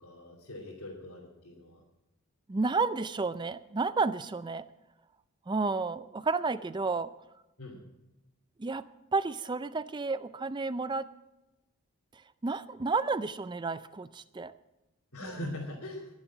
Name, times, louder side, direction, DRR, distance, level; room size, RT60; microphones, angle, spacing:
voice 1, 0.0-1.8 7.6-7.8 15.1-16.1, left 1 dB, 85° left, -6 dB, 2.8 m, -41 dB
voice 2, 2.5-4.6 5.5-7.1 8.6-11.1 12.4-14.5 15.2-15.3, right 4 dB, 20° right, 14 dB, 0.4 m, -31 dB
21.5 x 7.3 x 6.1 m, 0.97 s
head